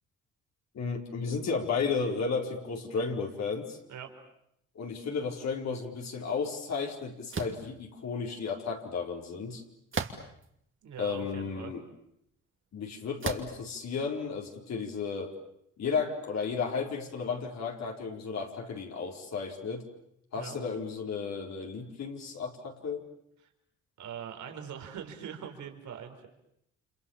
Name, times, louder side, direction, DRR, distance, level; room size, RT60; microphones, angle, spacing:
voice 1, 0.7-3.8 4.7-9.6 11.0-11.8 12.7-15.3 15.8-19.8 20.3-23.1, left 5 dB, 60° left, 1 dB, 4.4 m, -33 dB
sound 1, 7.3-7.6 9.9-10.5 11.2-11.3 13.2-13.6, right 5 dB, 40° right, 2.8 m, -34 dB
voice 2, 10.8-11.7 20.3-20.6 24.0-26.3, right 8 dB, 75° right, 5 dB, 4.7 m, -42 dB
30.0 x 26.5 x 7.2 m, 0.76 s
cardioid pair, 90°, 30 cm